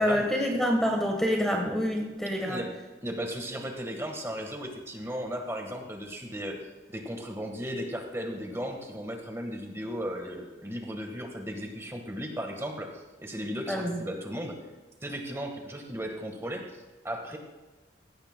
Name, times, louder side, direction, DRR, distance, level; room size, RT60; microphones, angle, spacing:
voice 1, 0.0-2.6 13.7-14.0, equal, 5° left, 1 dB, 1.2 m, -27 dB
voice 2, 3.0-6.6 6.9-14.6 15.0-17.4, equal, 15° right, 3 dB, 1.4 m, -36 dB
16.5 x 16.0 x 2.2 m, 1.2 s
head